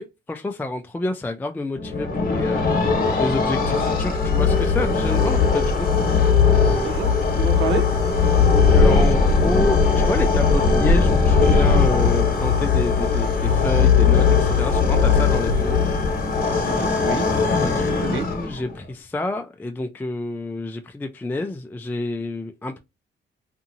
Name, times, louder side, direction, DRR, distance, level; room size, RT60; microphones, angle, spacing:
voice 1, 0.0-5.9 8.7-15.8 17.6-17.8 18.2-22.8, left 2 dB, 10° left, 0.3 m, -28 dB
sound 1, 1.8-18.7, left 5 dB, 45° left, 1.0 m, -19 dB
voice 2, 6.8-7.9 16.6-17.7 18.0-18.3, right 4 dB, 80° right, 0.6 m, -29 dB
2.7 x 2.5 x 2.6 m
cardioid pair, 90°, 20 cm